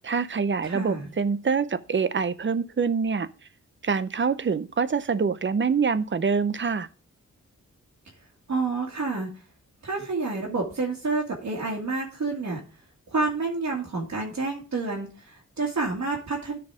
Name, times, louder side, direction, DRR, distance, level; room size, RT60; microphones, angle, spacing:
voice 1, 0.0-3.3 3.8-6.9, right 5 dB, 40° right, 0.6 m, -25 dB
voice 2, 0.6-1.1 8.5-9.4 9.8-12.6 13.1-16.6, right 3 dB, 65° right, 2.3 m, -29 dB
13.0 x 4.7 x 4.9 m
wide cardioid pair, 130°, 30 cm